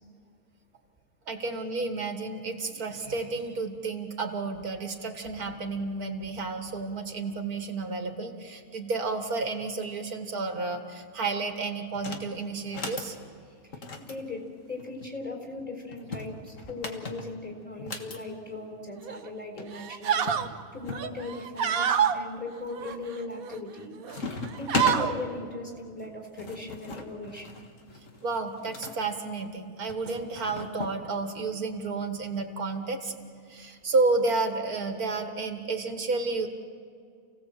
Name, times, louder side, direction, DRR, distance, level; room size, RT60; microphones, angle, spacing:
voice 1, 1.3-13.2 28.2-33.1 33.5-36.5, right 3 dB, 90° right, 5 dB, 2.3 m, -31 dB
sound 1, 11.9-12.3 12.6-13.1 13.7-15.1 15.9-18.2 19.3-19.4 19.6-19.7 20.3-21.1 21.6-22.1 22.7-23.1 23.4-23.8 24.1-25.0 26.0-29.0 29.9-31.0, left 3 dB, 60° left, 2.1 m, -37 dB
voice 2, 13.7-27.6, left 2 dB, 5° left, 2 dB, 3.9 m, -39 dB
sound 2, 19.0-19.3 19.7-20.5 20.9-22.2 22.7-23.6 24.0-24.2 24.5-25.1, right 8 dB, 75° right, 1.4 m, -27 dB
29.0 x 17.0 x 7.7 m, 2.2 s
omnidirectional pair, 1.5 m